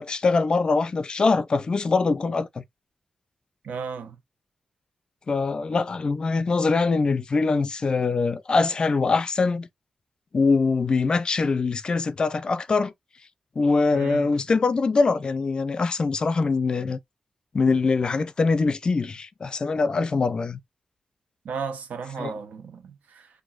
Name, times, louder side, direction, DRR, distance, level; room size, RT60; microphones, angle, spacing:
voice 1, 0.0-2.6 5.3-9.7 10.3-12.9 13.6-17.0 17.5-20.6 22.2-22.3, left 4 dB, 35° left, 0.4 m, -23 dB
voice 2, 3.6-4.2 13.9-14.3 21.4-23.3, right 5 dB, 80° right, 0.9 m, -34 dB
6.0 x 2.6 x 2.4 m
wide cardioid pair, 165°, 3 cm